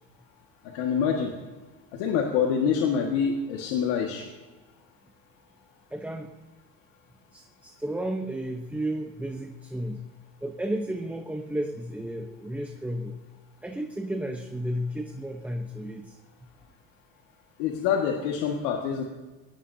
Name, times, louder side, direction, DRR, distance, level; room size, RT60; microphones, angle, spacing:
voice 1, 0.7-1.3 2.0-4.2 17.6-19.0, left 7 dB, 85° left, 1 dB, 1.9 m, -26 dB
voice 2, 5.9-6.4 7.3-10.0 10.4-13.2 13.6-16.2, right 1 dB, 5° right, 3 dB, 0.9 m, -33 dB
22.5 x 18.0 x 2.8 m, 1.3 s
cardioid pair, 140°, 36 cm